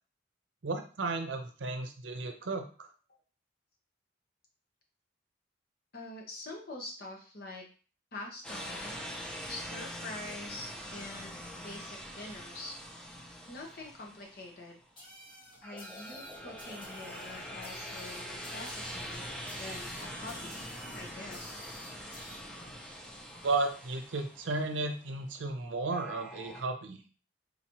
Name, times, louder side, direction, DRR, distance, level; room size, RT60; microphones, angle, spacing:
voice 1, 0.6-2.9 23.4-27.0, right 3 dB, 80° right, 6 dB, 0.6 m, -34 dB
voice 2, 5.9-7.6 8.1-8.9 9.5-11.3 11.6-12.7 13.5-14.8 15.6-19.2 19.5-20.6 20.9-21.6, left 2 dB, 50° left, 0 dB, 1.0 m, -45 dB
sound 1, 8.4-14.8 15.6-25.0 25.9-26.6, equal, 5° left, 0.7 m, -44 dB
sound 2, 15.0-22.4, left 1 dB, 25° left, 1.2 m, -51 dB
4.0 x 2.9 x 2.9 m, 0.38 s
head